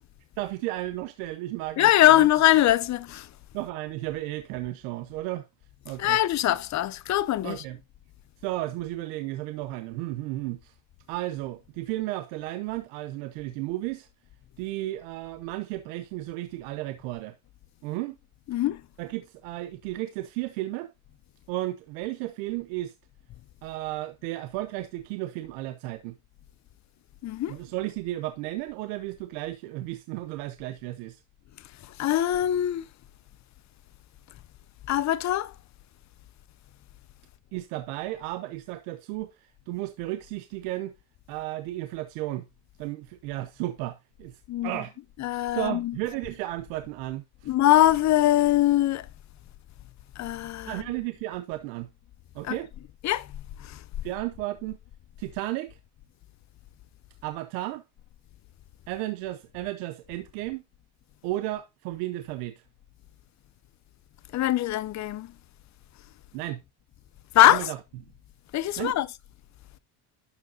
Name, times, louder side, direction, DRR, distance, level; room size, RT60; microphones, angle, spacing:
voice 1, 0.4-2.1 3.5-5.5 5.8-6.2 7.4-7.8 8.4-10.7 11.1-14.1 14.6-17.4 17.8-18.2 19.0-20.9 21.5-22.9 23.6-26.1 27.5-31.2 37.5-40.9 41.3-42.5 42.8-44.9 45.3-47.5 50.7-51.9 52.3-52.7 54.0-54.8 55.2-55.8 57.2-57.8 58.9-60.6 61.2-62.6 66.3-66.6 67.5-67.8 68.8-69.0, right 16 dB, 85° right, 0.9 m, -33 dB
voice 2, 1.8-3.3 6.0-7.6 18.5-18.8 27.2-27.6 31.8-32.9 34.9-35.5 44.5-44.7 45.2-46.0 47.5-49.1 50.2-50.8 52.4-52.6 53.0-53.3 53.6-53.8 64.3-65.3 67.3-67.7 68.5-69.1, left 13 dB, 35° left, 0.6 m, -22 dB
12.0 x 4.7 x 2.7 m
supercardioid pair, 95°, 49 cm